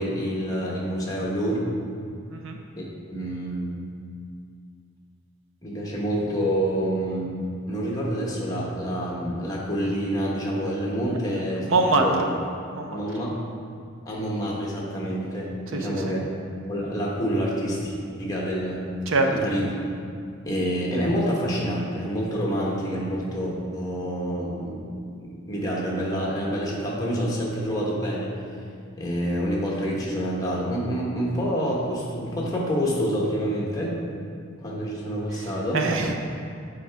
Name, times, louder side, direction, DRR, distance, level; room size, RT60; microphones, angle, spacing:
voice 1, 0.0-1.7 2.8-3.7 5.6-7.3 7.7-11.7 12.0-12.2 12.9-13.3 14.0-16.2 16.7-18.8 19.3-19.7 20.4-24.8 25.2-28.3 29.0-34.0 34.6-35.8, equal, 15° left, -4 dB, 1.1 m, -27 dB
voice 2, 11.2-12.3 12.7-13.0 15.7-16.2 19.1-19.3 35.3-36.1, right 3 dB, 75° right, 3 dB, 0.6 m, -25 dB
8.7 x 4.9 x 3.5 m, 2.3 s
head